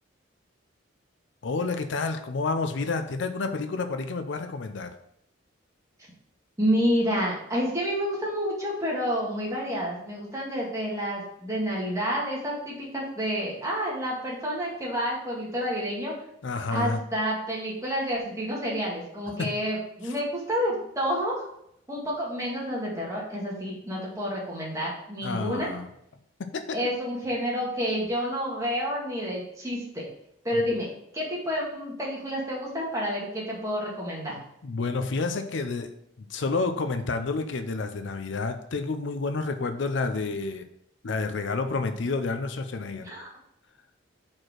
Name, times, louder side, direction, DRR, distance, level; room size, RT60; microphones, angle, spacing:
voice 1, 1.4-4.9 16.4-17.0 19.4-19.5 20.0-20.1 25.2-25.9 26.5-26.8 30.5-30.6 34.6-35.9 36.3-40.7 41.0-43.1, left 3 dB, 65° left, 8 dB, 0.5 m, -29 dB
voice 2, 6.6-16.1 16.7-21.5 21.9-25.7 26.7-30.1 30.4-30.9 31.1-34.4 43.0-43.3, equal, 15° right, -4 dB, 1.8 m, -29 dB
4.8 x 4.4 x 6.0 m, 0.74 s
head